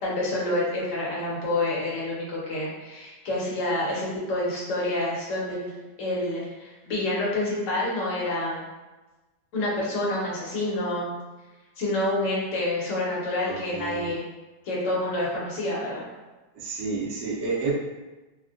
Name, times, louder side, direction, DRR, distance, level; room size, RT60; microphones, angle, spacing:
voice 1, 0.0-5.7 6.0-8.6 9.5-11.1 11.8-14.3 14.6-16.1, left 1 dB, 55° left, -5 dB, 1.1 m, -28 dB
voice 2, 13.4-14.2 16.5-17.7, right 4 dB, 85° right, -3 dB, 1.4 m, -30 dB
3.4 x 2.1 x 2.4 m, 1.2 s
omnidirectional pair, 1.9 m